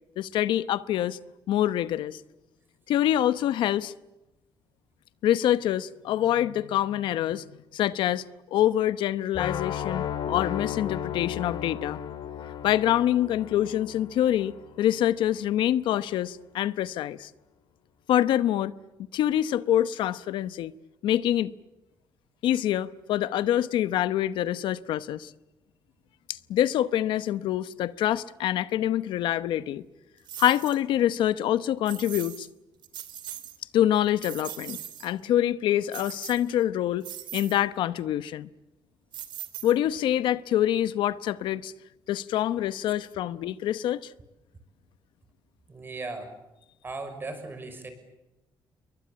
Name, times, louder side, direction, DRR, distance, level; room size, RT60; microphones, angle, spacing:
voice 1, 0.2-1.2 1.5-2.2 2.9-3.9 5.2-7.4 7.7-8.2 8.5-12.0 12.6-17.3 18.1-18.7 19.1-20.7 21.0-21.5 22.4-25.3 26.3-29.8 30.4-32.5 33.7-38.5 39.6-41.7 42.1-44.1, left 12 dB, 85° left, 0.9 m, -25 dB
sound 1, 9.3-15.3, left 9 dB, 60° left, 3.5 m, -34 dB
sound 2, 30.3-30.8 31.9-32.5 32.8-33.6 34.0-35.1 35.9-36.6 37.0-37.6 39.1-40.0, right 11 dB, 75° right, 2.9 m, -40 dB
voice 2, 45.7-46.3 46.8-47.9, right 3 dB, 25° right, 6.0 m, -37 dB
29.0 x 23.0 x 8.8 m
cardioid pair, 130°, 8 cm